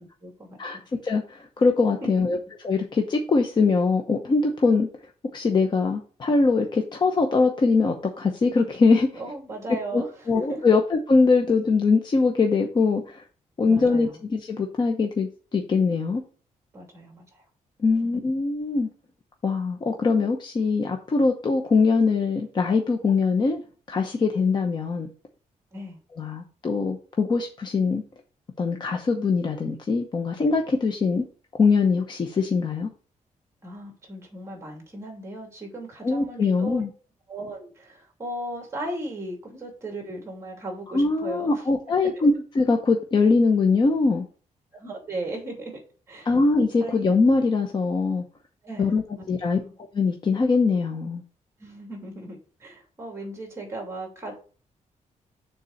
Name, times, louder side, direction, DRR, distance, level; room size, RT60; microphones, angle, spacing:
voice 1, 0.2-0.6 2.0-2.4 9.1-10.8 13.6-14.2 16.7-17.4 18.1-18.2 25.7-26.0 33.6-36.8 37.3-41.7 42.0-42.1 44.7-45.8 46.1-46.3 46.8-47.1 48.6-49.6 51.6-54.3, right 1 dB, 20° right, 1 dB, 2.7 m, -37 dB
voice 2, 1.0-2.4 2.6-4.9 5.3-9.1 9.9-10.0 10.3-13.2 13.6-16.2 17.8-18.9 19.4-23.6 23.9-25.1 26.2-28.0 28.6-31.2 31.6-32.9 36.0-36.9 40.9-44.2 46.2-48.2 48.8-49.0 49.3-49.6 49.9-51.2, left 4 dB, 35° left, 3 dB, 0.8 m, -22 dB
6.8 x 3.8 x 6.5 m, 0.39 s
wide cardioid pair, 165°, 13 cm